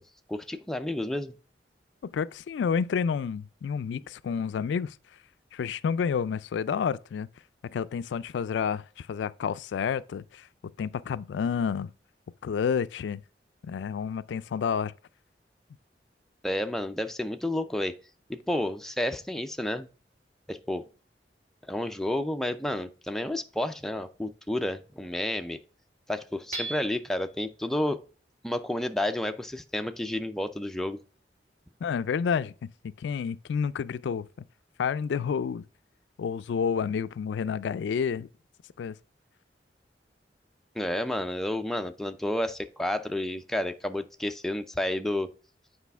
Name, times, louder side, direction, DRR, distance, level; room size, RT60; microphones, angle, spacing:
voice 1, 0.3-1.3 16.4-18.0 18.3-19.9 20.5-20.9 21.7-25.6 26.1-28.0 28.4-31.0 40.8-45.3, left 1 dB, ahead, 0.4 m, -30 dB
voice 2, 2.0-5.0 5.5-7.3 7.6-10.5 10.8-11.9 12.4-13.2 13.6-14.9 31.8-32.5 32.8-34.3 34.8-35.6 36.2-38.3 38.8-39.0, left 6 dB, 90° left, 0.3 m, -29 dB
Hammer / Chink clink, 26.5-27.3, right 3 dB, 40° right, 1.9 m, -37 dB
8.3 x 4.9 x 3.4 m
head